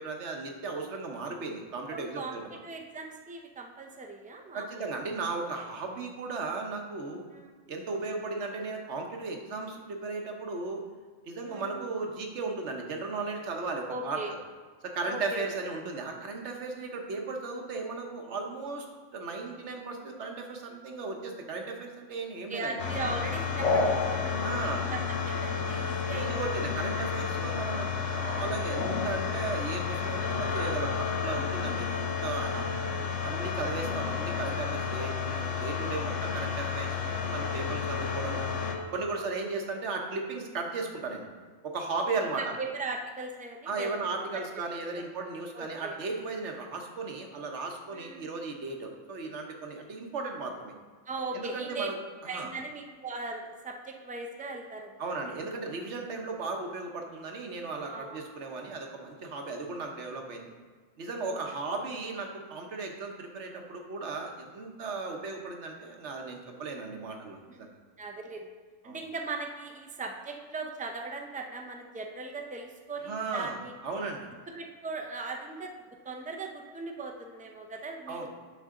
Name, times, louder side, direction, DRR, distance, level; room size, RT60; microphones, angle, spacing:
voice 1, 0.0-2.4 4.5-7.2 7.7-10.8 11.2-14.4 14.8-18.9 19.1-22.8 24.4-24.8 26.1-32.6 33.2-38.5 38.9-41.3 41.6-42.4 43.7-50.7 51.3-52.0 52.2-52.5 55.0-60.5 61.0-67.8 68.8-69.0 73.0-74.3 78.1-78.3, right 3 dB, 70° right, 2 dB, 1.3 m, -36 dB
voice 2, 1.9-2.3 2.6-5.0 7.3-7.5 11.4-11.8 13.9-14.3 15.0-15.5 22.5-26.5 27.0-27.1 32.8-33.2 39.1-39.3 42.4-43.9 44.3-44.4 44.9-45.0 45.5-46.0 47.9-48.3 51.1-51.9 52.3-54.9 57.9-58.2 61.2-61.4 67.5-67.6 68.0-68.5 68.8-73.7 74.6-75.7 76.0-78.3, right 3 dB, 10° right, 3 dB, 0.4 m, -39 dB
sound 1, 22.8-38.7, left 5 dB, 80° left, 1.3 m, -31 dB
9.2 x 5.6 x 3.7 m, 1.5 s
omnidirectional pair, 1.3 m